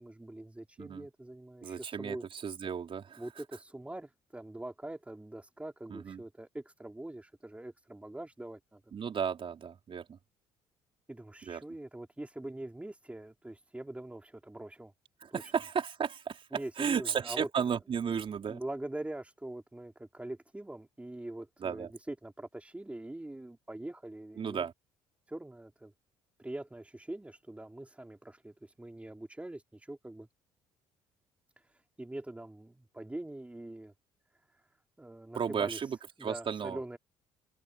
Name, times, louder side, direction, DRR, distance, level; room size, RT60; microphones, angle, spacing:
voice 1, 0.0-2.2 3.2-8.9 11.1-14.9 15.3-15.4 16.5-17.5 18.0-18.1 18.5-24.7 25.3-25.9 26.4-30.3 31.6-33.9 34.5-34.6 35.0-37.0, right 1 dB, 10° right, 4.0 m, -43 dB
voice 2, 1.6-3.2 5.9-6.2 8.9-10.2 11.5-11.6 15.2-18.6 21.6-21.9 24.4-24.7 35.3-36.8, right 7 dB, 45° right, 4.3 m, -34 dB
supercardioid pair, 70°, 13 cm